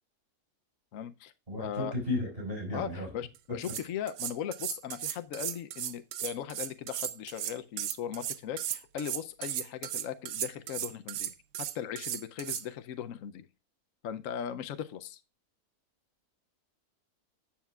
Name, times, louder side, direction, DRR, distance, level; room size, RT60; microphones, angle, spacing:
voice 1, 0.9-1.3 1.6-1.9 2.7-11.3 11.7-13.5 14.0-15.2, left 9 dB, 65° left, 10 dB, 1.0 m, -38 dB
voice 2, 1.5-3.1, left 1 dB, 35° right, 1 dB, 5.3 m, -34 dB
sound 1, 3.3-3.4 3.6-12.6, right 12 dB, 90° right, 1.2 m, -36 dB
13.0 x 7.2 x 2.4 m, 0.29 s
omnidirectional pair, 1.6 m